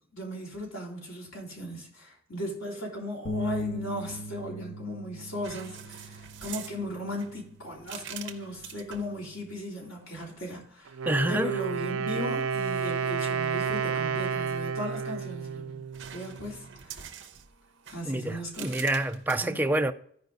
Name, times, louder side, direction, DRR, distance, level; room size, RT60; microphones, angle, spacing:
voice 1, 0.1-11.0 11.3-15.8 16.1-17.0 17.9-18.8 19.4-19.5, equal, 80° left, 3.5 m, -37 dB
sound 1, 3.3-9.5, left 1 dB, 60° left, 1.1 m, -39 dB
sound 2, 5.4-9.2 10.1-10.5 14.7-15.5 15.9-19.4, right 9 dB, 60° right, 0.9 m, -45 dB
Wind instrument woodwind instrument, 10.9-16.6, right 6 dB, 85° right, 0.5 m, -31 dB
voice 2, 11.1-11.6 18.1-19.9, right 1 dB, 10° right, 0.4 m, -27 dB
14.0 x 5.1 x 3.9 m
head